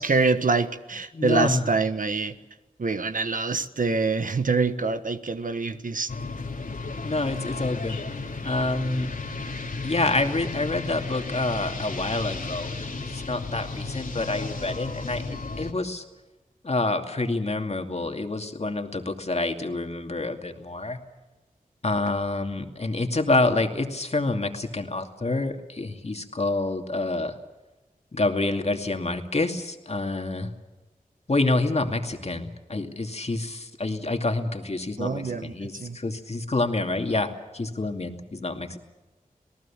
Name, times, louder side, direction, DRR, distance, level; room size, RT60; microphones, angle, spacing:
voice 1, 0.0-2.3 2.8-6.1 35.0-36.0, right 4 dB, 65° right, 11 dB, 1.3 m, -25 dB
voice 2, 1.1-1.7 7.0-8.0 8.4-9.1 9.8-16.0 16.6-21.0 21.8-27.4 28.1-30.5 31.3-38.8, left 2 dB, 45° left, 5 dB, 2.5 m, -27 dB
sound 1, 6.1-15.7, left 3 dB, 70° left, 2.6 m, -34 dB
27.0 x 18.5 x 7.3 m, 1.1 s
wide cardioid pair, 60°, 15 cm